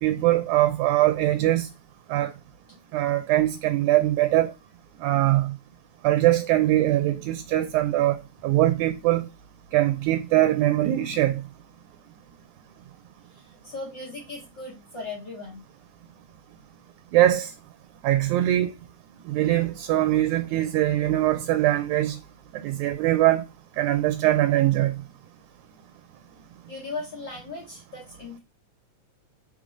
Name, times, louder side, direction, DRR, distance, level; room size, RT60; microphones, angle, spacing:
voice 1, 0.0-1.7 2.1-2.3 2.9-4.5 5.0-5.5 6.0-9.3 9.7-11.4 17.1-17.5 18.0-18.7 19.3-22.2 22.5-23.4 23.8-24.9, right 14 dB, 80° right, 1.9 m, -22 dB
voice 2, 13.3-15.6 26.7-28.4, left 3 dB, 55° left, 1.2 m, -38 dB
5.0 x 3.6 x 5.1 m
omnidirectional pair, 3.8 m